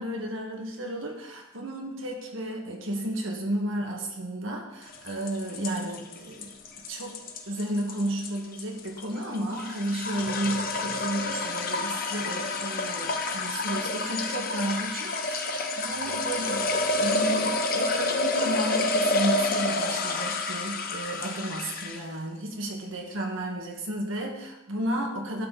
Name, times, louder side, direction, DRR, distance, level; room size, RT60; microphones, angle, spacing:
voice 1, 0.0-6.5 6.9-7.2 7.5-16.7 17.0-25.5, right 1 dB, 70° right, 1 dB, 1.7 m, -32 dB
sound 1, 4.9-22.1, left 2 dB, 45° left, 1.0 m, -29 dB
11.5 x 6.6 x 4.1 m, 0.94 s
head